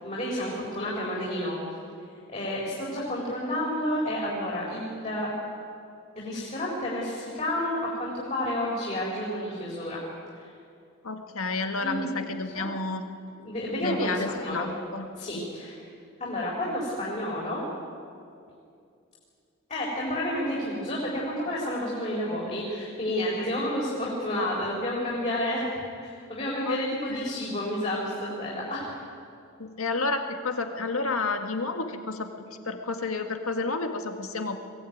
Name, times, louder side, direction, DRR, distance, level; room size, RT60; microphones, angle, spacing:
voice 1, 0.0-1.6 2.3-5.3 6.2-10.0 10.4-10.5 11.8-12.1 12.5-12.7 13.4-14.7 15.2-15.8 16.2-17.6 19.7-25.7 26.0-28.9, left 1 dB, 30° left, -5 dB, 4.3 m, -30 dB
voice 2, 11.0-13.0 13.8-15.1 15.3-15.4 26.7-26.8 27.1-27.3 29.6-34.7, left 3 dB, 85° left, 5 dB, 1.9 m, -31 dB
22.0 x 17.0 x 9.3 m, 2.5 s
head